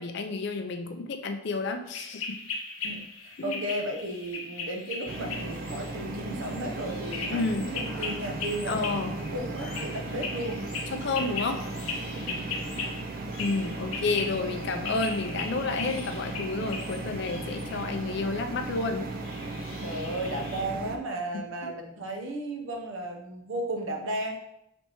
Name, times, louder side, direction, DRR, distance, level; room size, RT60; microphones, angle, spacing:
voice 1, 0.0-2.4 3.4-3.6 7.3-7.7 8.7-9.2 10.9-11.6 13.4-19.1 21.6-21.7, left 3 dB, 55° left, 5 dB, 0.4 m, -30 dB
sound 1, 1.9-20.6, left 4 dB, 85° left, 0.8 m, -39 dB
voice 2, 2.8-10.6 12.3-12.7 19.8-24.3, right 1 dB, 65° right, 1 dB, 0.7 m, -35 dB
sound 2, 5.1-21.0, right 2 dB, 45° right, 0.3 m, -37 dB
sound 3, 6.7-13.1, right 1 dB, 5° left, 0.8 m, -46 dB
4.2 x 3.4 x 2.9 m, 0.79 s
head